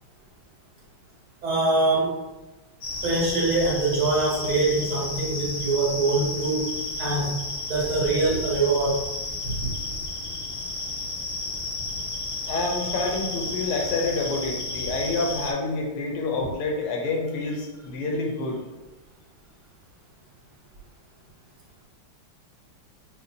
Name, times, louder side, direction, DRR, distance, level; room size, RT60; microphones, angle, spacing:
voice 1, 1.4-2.2 3.0-6.7 7.0-7.4 7.7-9.0 9.4-9.7, right 3 dB, 70° right, -5 dB, 2.1 m, -24 dB
sound 1, 2.8-15.5, left 2 dB, 50° left, 0.7 m, -32 dB
voice 2, 12.4-18.6, left 3 dB, 85° left, 1 dB, 1.7 m, -28 dB
6.6 x 2.2 x 2.7 m, 1.1 s
omnidirectional pair, 2.4 m